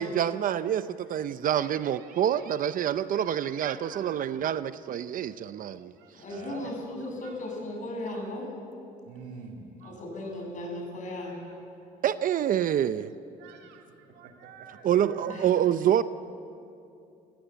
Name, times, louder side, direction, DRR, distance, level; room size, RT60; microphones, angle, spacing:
voice 1, 0.0-5.9 12.0-13.1 14.8-16.0, right 10 dB, 55° right, 0.7 m, -27 dB
voice 2, 1.6-2.4 3.1-4.1 5.8-7.4 8.0-8.3 9.0-10.0 11.2-11.4 11.8-11.9 13.4-15.6, right 6 dB, 85° right, 2.9 m, -48 dB
voice 3, 6.2-8.5 9.8-11.4 13.4-13.5 15.3-15.5, left 1 dB, 50° left, 7.8 m, -36 dB
28.5 x 15.5 x 8.2 m
cardioid pair, 110°, 17 cm